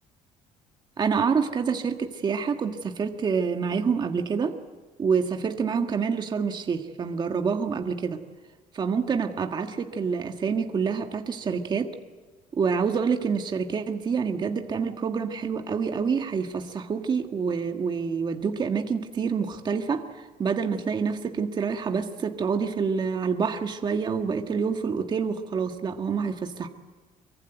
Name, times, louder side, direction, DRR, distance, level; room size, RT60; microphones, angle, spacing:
voice 1, 1.0-4.6 5.0-8.2 8.7-11.9 12.5-26.7, right 5 dB, 35° right, 5 dB, 1.8 m, -27 dB
24.0 x 23.5 x 9.4 m, 1.4 s
cardioid pair, 120°, 13 cm